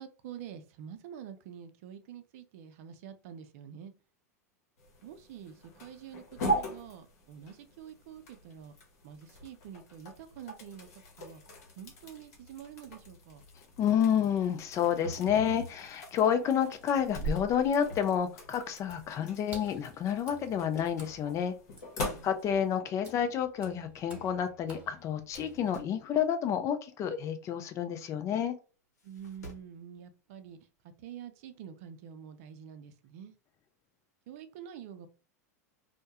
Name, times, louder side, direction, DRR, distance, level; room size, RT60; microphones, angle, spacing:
voice 1, 0.0-3.9 5.0-8.7 9.0-10.9 11.2-11.4 11.8-13.4 22.0-22.3 29.0-30.6 31.0-33.3 34.3-35.1, right 9 dB, 60° right, 0.5 m, -47 dB
sound 1, 4.8-22.8, equal, 65° left, 0.9 m, -41 dB
voice 2, 13.8-21.5 22.2-28.5, left 8 dB, 35° left, 0.5 m, -29 dB
sound 2, 14.4-16.2 16.7-18.6 18.9-19.2 20.4-21.3 21.7-21.8 22.7-22.8 23.1-23.2 23.3-23.4 24.3-24.5 24.8-24.9 25.3-26.0 27.8-27.9 28.9-29.8 31.1-31.2, right 3 dB, 85° left, 0.7 m, -44 dB
Water / Splash splatter, 18.8-26.0, right 3 dB, 15° right, 1.3 m, -53 dB
2.2 x 2.1 x 2.7 m
hypercardioid pair, 100°, 9 cm